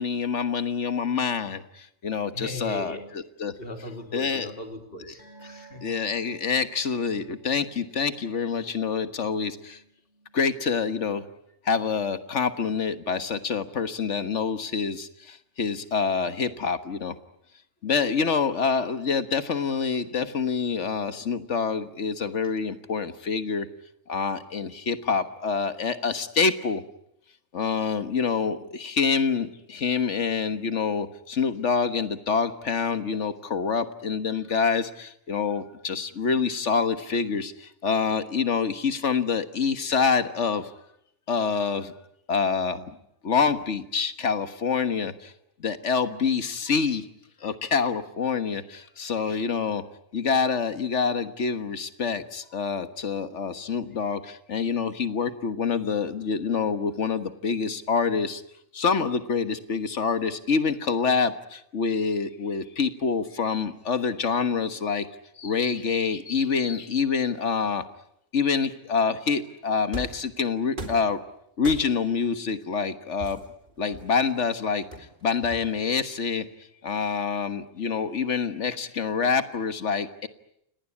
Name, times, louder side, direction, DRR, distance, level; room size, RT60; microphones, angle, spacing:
voice 1, 0.0-2.9 3.4-3.5 4.1-4.5 5.8-9.8 10.3-11.3 11.6-17.1 17.8-23.7 24.1-26.8 27.5-40.7 41.3-41.9 42.3-43.0 43.2-45.3 45.6-47.1 47.4-49.8 50.1-58.4 58.7-65.1 65.4-67.8 68.3-71.2 71.6-73.4 73.8-74.8 75.2-76.5 76.8-80.3, left 5 dB, 90° left, 11 dB, 1.7 m, -26 dB
voice 2, 2.3-3.0 3.6-5.9, left 1 dB, 55° left, 5 dB, 3.5 m, -38 dB
sound 1, 5.2-12.0 12.3-12.5 12.9-13.0, right 4 dB, 70° left, 7.9 m, -55 dB
sound 2, 69.9-70.3 70.8-71.1 71.6-72.1 73.2-74.3 74.9-75.9, right 1 dB, 45° right, 3.7 m, -39 dB
28.5 x 19.0 x 9.8 m, 0.77 s
omnidirectional pair, 1.2 m